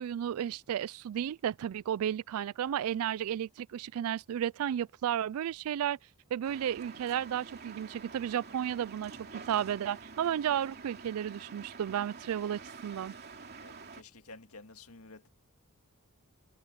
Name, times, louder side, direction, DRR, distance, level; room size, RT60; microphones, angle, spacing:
voice 1, 0.0-6.0 6.3-13.1, right 9 dB, 75° right, 0.3 m, -33 dB
sound 1, 6.4-14.0, right 4 dB, 50° right, 2.8 m, -48 dB
voice 2, 13.6-15.3, left 3 dB, 80° left, 2.0 m, -51 dB
head